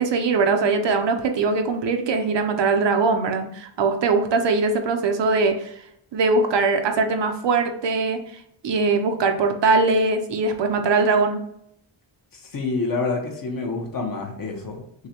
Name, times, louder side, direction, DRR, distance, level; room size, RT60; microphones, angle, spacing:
voice 1, 0.0-5.8 6.1-11.4, right 3 dB, 60° right, 6 dB, 0.6 m, -21 dB
voice 2, 12.5-15.1, left 3 dB, 45° left, 2 dB, 0.8 m, -27 dB
6.3 x 2.1 x 2.8 m, 0.72 s
wide cardioid pair, 175°, 49 cm